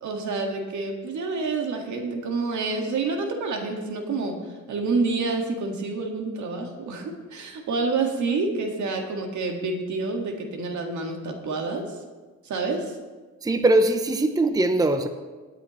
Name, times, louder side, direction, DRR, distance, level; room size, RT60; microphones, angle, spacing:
voice 1, 0.0-4.4 4.7-11.8 12.4-13.0, right 3 dB, 70° right, 2 dB, 1.9 m, -28 dB
voice 2, 13.4-15.1, right 2 dB, 10° right, 8 dB, 0.7 m, -21 dB
17.5 x 9.0 x 3.1 m, 1.3 s
cardioid pair, 90°, 30 cm